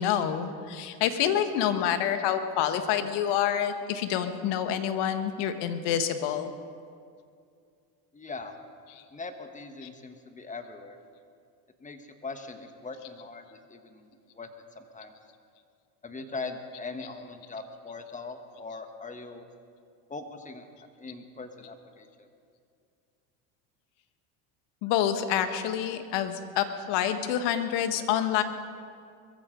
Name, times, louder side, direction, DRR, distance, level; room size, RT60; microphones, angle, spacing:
voice 1, 0.0-6.5 24.8-28.4, left 9 dB, 60° left, 8 dB, 1.5 m, -27 dB
voice 2, 8.1-8.6 9.1-11.0 11.8-14.5 14.7-15.2 16.0-19.4 20.1-20.7 21.0-22.3, left 3 dB, 15° left, 7 dB, 1.5 m, -41 dB
22.0 x 14.5 x 3.9 m, 2.3 s
hypercardioid pair, 90°, 46 cm